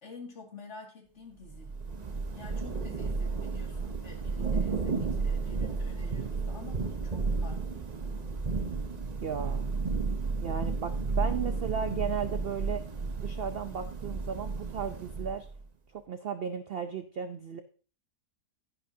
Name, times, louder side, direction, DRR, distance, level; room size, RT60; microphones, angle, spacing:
voice 1, 0.0-1.7 2.3-7.9, left 3 dB, 45° left, 0 dB, 2.4 m, -49 dB
Thunder / Rain, 1.5-15.6, right 4 dB, 35° right, 0.8 m, -32 dB
voice 2, 9.2-9.7 10.4-12.8 13.2-15.5 15.9-17.6, right 7 dB, 60° right, 9 dB, 0.6 m, -35 dB
10.5 x 10.5 x 2.7 m, 0.39 s
omnidirectional pair, 1.7 m